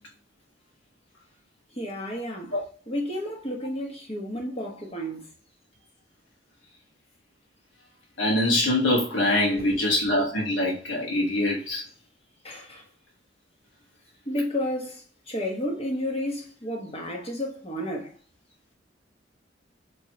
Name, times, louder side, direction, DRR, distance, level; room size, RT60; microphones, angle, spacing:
voice 1, 1.7-2.5 2.9-5.2 9.4-9.8 12.4-12.8 14.2-18.1, left 1 dB, 30° left, 1.1 m, -32 dB
voice 2, 8.2-11.8, left 1 dB, 85° left, 1.5 m, -24 dB
4.4 x 3.1 x 2.9 m
head